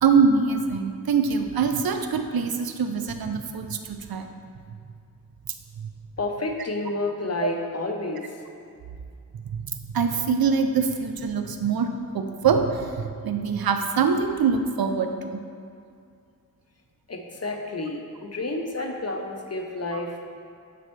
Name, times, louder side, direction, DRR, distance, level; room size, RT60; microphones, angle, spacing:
voice 1, 0.0-4.3 5.8-5.9 7.4-7.5 9.5-15.4 19.9-20.0, right 5 dB, 80° right, 6 dB, 0.5 m, -24 dB
voice 2, 6.2-8.2 17.1-20.2, left 2 dB, 45° left, 2 dB, 0.8 m, -30 dB
9.0 x 4.3 x 3.2 m, 2.4 s
cardioid pair, 45°, 36 cm